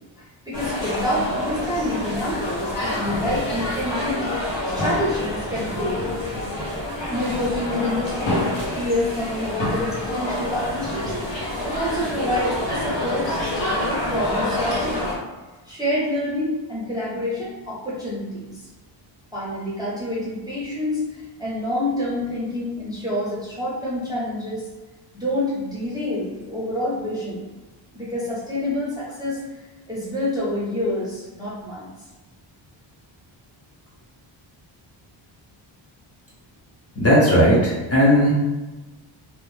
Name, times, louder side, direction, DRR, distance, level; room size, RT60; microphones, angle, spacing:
sound 1, 0.5-15.2, left 1 dB, 65° left, 0.7 m, -27 dB
voice 1, 0.5-4.4 4.8-6.1 7.1-8.5 8.7-11.1 11.6-15.0 15.7-18.7 19.3-24.7 25.1-27.4 27.9-29.4 29.9-31.9, left 1 dB, 10° right, -9 dB, 0.5 m, -27 dB
voice 2, 37.0-38.3, equal, 30° left, -6 dB, 0.7 m, -16 dB
2.1 x 2.0 x 3.1 m, 1.1 s
wide cardioid pair, 135°, 47 cm